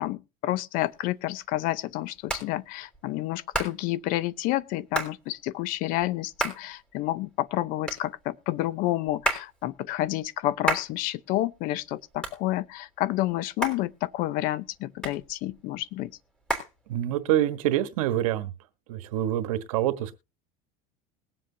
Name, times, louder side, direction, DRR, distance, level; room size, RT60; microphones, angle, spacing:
voice 1, 0.0-16.1, left 16 dB, 55° left, 0.7 m, -29 dB
Hands, 0.8-17.4, right 2 dB, 5° left, 3.2 m, -36 dB
voice 2, 16.9-18.5 18.9-20.2, right 12 dB, 85° right, 1.3 m, -26 dB
20.5 x 7.7 x 2.8 m
supercardioid pair, 135°, 17 cm